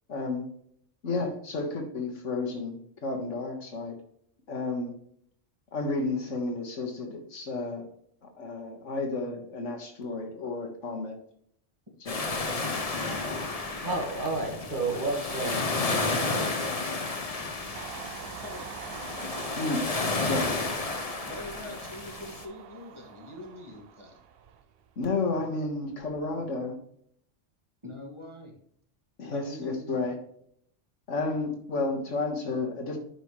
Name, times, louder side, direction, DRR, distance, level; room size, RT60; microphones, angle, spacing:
voice 1, 0.1-0.4 1.0-3.9 4.5-4.9 5.7-7.9 8.2-11.1 12.0-12.3 12.9-13.3 19.6-19.8 20.2-20.5 25.0-26.8 29.2-30.2 31.1-33.0, left 3 dB, 80° left, 2 dB, 1.8 m, -32 dB
sound 1, 12.1-22.4, left 3 dB, 35° left, 0.9 m, -32 dB
voice 2, 13.8-17.0, right 2 dB, 40° right, -1 dB, 1.8 m, -32 dB
Train, 17.7-25.2 25.5-26.4, right 7 dB, 60° right, 0.8 m, -44 dB
voice 3, 21.2-24.2 27.8-28.6 29.3-30.1, left 1 dB, 25° right, -1 dB, 2.0 m, -44 dB
9.9 x 5.5 x 3.1 m, 0.66 s
omnidirectional pair, 1.2 m